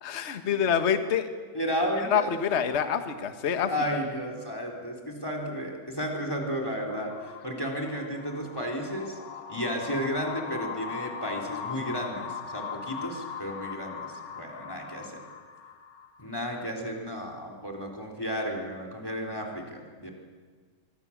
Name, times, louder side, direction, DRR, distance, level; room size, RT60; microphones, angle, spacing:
voice 1, 0.0-1.3 2.1-3.7, left 7 dB, 40° left, 8 dB, 1.0 m, -26 dB
voice 2, 1.5-2.3 3.7-9.2 9.5-15.2 16.2-20.1, equal, 5° left, 2 dB, 3.7 m, -33 dB
sound 1, 6.9-16.4, left 6 dB, 60° left, 1.1 m, -40 dB
25.0 x 23.5 x 7.4 m, 1.5 s
omnidirectional pair, 3.4 m